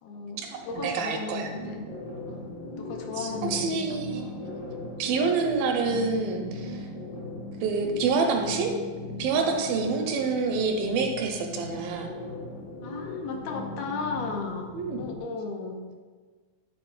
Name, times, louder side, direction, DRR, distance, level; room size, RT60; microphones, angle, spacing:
voice 1, 0.0-1.9 2.3-3.8 12.8-15.8, left 4 dB, 90° left, 2 dB, 2.7 m, -35 dB
voice 2, 0.8-1.5 3.2-4.2 5.0-6.8 7.6-8.7 9.2-12.1 14.7-15.1, right 4 dB, 80° right, 3 dB, 2.3 m, -27 dB
sound 1, 1.4-15.2, left 2 dB, 65° left, 1.5 m, -39 dB
9.1 x 3.5 x 4.6 m, 1.5 s
omnidirectional pair, 4.3 m